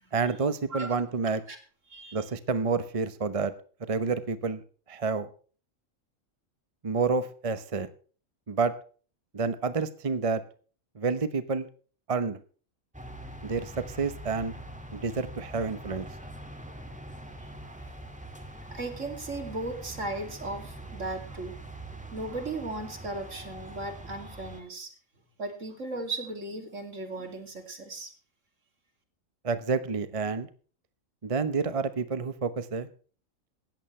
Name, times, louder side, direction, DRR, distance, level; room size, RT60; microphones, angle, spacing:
voice 1, 0.1-1.4 2.1-3.5 3.9-4.6 4.9-5.3 6.8-7.9 8.5-8.7 9.3-10.4 11.0-11.7 12.1-12.4 13.4-14.5 14.9-16.1 29.4-30.5 31.2-32.9, right 4 dB, 30° right, 12 dB, 0.8 m, -29 dB
voice 2, 1.9-2.3 17.4-17.9 18.5-21.6 22.1-24.9 25.4-28.1, right 2 dB, 65° right, 5 dB, 3.0 m, -37 dB
sound 1, 12.9-24.6, right 1 dB, 5° right, 2.1 m, -43 dB
17.5 x 13.5 x 3.2 m, 0.40 s
omnidirectional pair, 1.4 m